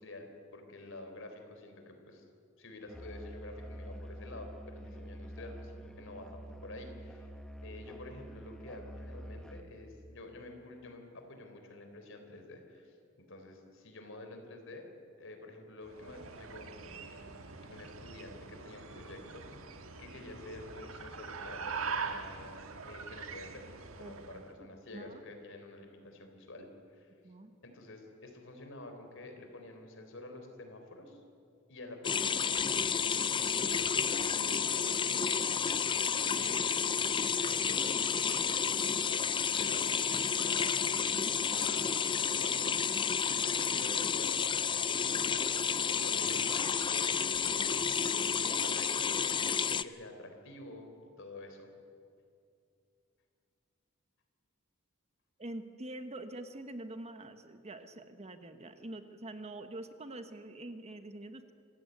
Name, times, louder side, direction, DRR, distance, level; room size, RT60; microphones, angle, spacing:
voice 1, 0.0-2.2 2.6-7.3 7.6-14.9 15.2-17.3 17.6-23.7 24.0-27.1 27.6-31.2 31.7-35.3 35.9-42.8 43.0-50.9 51.2-51.7, left 2 dB, 65° left, 5 dB, 3.8 m, -49 dB
Musical instrument, 2.9-9.8, equal, 5° left, 1.3 m, -47 dB
sound 1, 15.9-24.5, right 5 dB, 70° right, 1.6 m, -43 dB
voice 2, 24.0-24.4 24.9-25.2 27.2-27.5 43.3-43.4 46.4-47.4 48.0-48.1 48.4-48.8 55.4-61.5, right 1 dB, 30° right, 9 dB, 1.1 m, -46 dB
sound 2, 32.0-49.8, left 7 dB, 25° left, 0.5 m, -31 dB
26.0 x 15.0 x 9.3 m, 2.4 s
head